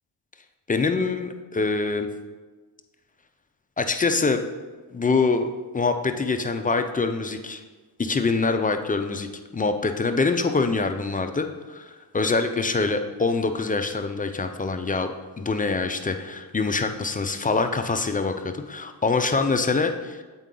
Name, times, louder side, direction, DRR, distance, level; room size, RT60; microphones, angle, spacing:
voice 1, 0.7-2.1 3.8-4.4 4.9-7.6 8.0-20.2, left 4 dB, 20° left, 6 dB, 0.4 m, -25 dB
8.0 x 4.6 x 3.8 m, 1.3 s
cardioid pair, 95°, 42 cm